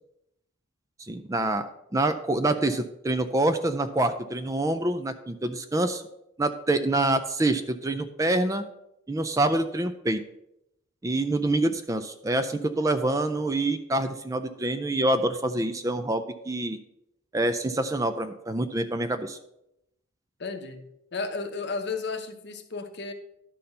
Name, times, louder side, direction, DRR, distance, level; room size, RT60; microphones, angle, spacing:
voice 1, 1.0-6.0 6.4-8.6 9.1-10.2 11.0-16.8 17.3-19.4, right 2 dB, 15° right, 9 dB, 0.4 m, -26 dB
voice 2, 20.4-23.1, left 4 dB, 55° left, 6 dB, 0.9 m, -33 dB
11.5 x 4.2 x 5.3 m, 0.84 s
head